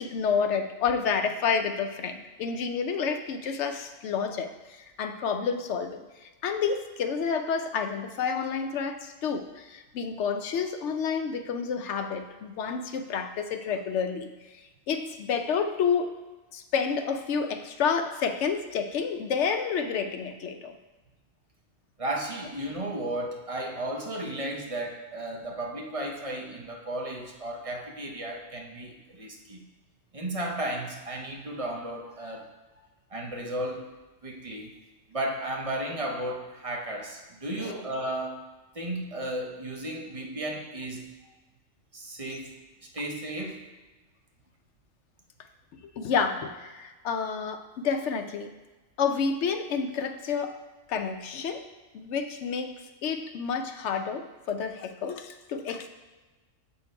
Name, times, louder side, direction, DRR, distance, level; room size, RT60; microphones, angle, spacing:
voice 1, 0.0-4.5 4.8-14.3 14.9-16.1 16.5-20.7 37.6-37.8 46.0-48.5 49.0-50.6 50.9-51.6 51.9-52.7 53.0-55.9, left 6 dB, 65° left, 7 dB, 0.8 m, -29 dB
voice 2, 22.0-29.6 30.1-32.5 33.1-33.9 34.2-34.7 35.1-38.4 38.7-41.0 41.9-42.6 42.9-43.6, right 1 dB, 35° right, 1 dB, 0.6 m, -34 dB
6.8 x 4.4 x 4.7 m, 1.2 s
omnidirectional pair, 1.4 m